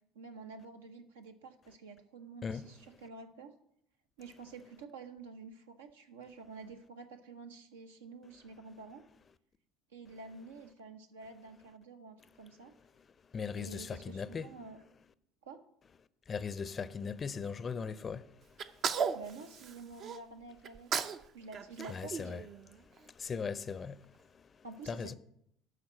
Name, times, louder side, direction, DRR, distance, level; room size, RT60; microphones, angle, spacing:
voice 1, 0.1-3.5 4.2-9.0 9.9-12.7 13.5-14.8 15.4-15.6 19.1-22.1 24.6-25.1, right 4 dB, 75° right, 0.9 m, -49 dB
voice 2, 2.4-2.7 13.0-13.1 13.3-14.5 16.3-19.2 21.9-22.4 22.8-25.1, left 5 dB, 30° left, 0.5 m, -40 dB
Sneeze, 18.6-20.2 20.6-21.2 21.5-23.0, right 6 dB, 45° right, 0.6 m, -36 dB
12.0 x 4.1 x 7.5 m
figure-of-eight pair, 60°, 0 cm